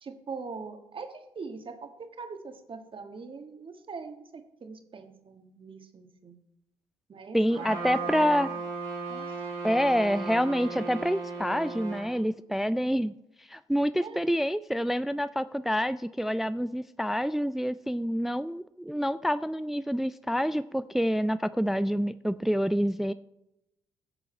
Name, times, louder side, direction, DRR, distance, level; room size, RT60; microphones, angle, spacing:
voice 1, 0.0-6.3 7.1-8.6 9.1-9.4 14.0-14.2, right 4 dB, 40° right, 7 dB, 1.6 m, -42 dB
voice 2, 7.3-8.5 9.6-13.1 13.4-23.1, equal, ahead, 15 dB, 0.4 m, -27 dB
Trumpet, 7.5-12.1, right 4 dB, 85° right, 3.7 m, -36 dB
16.5 x 6.9 x 4.3 m, 0.88 s
hypercardioid pair, 50°, 13 cm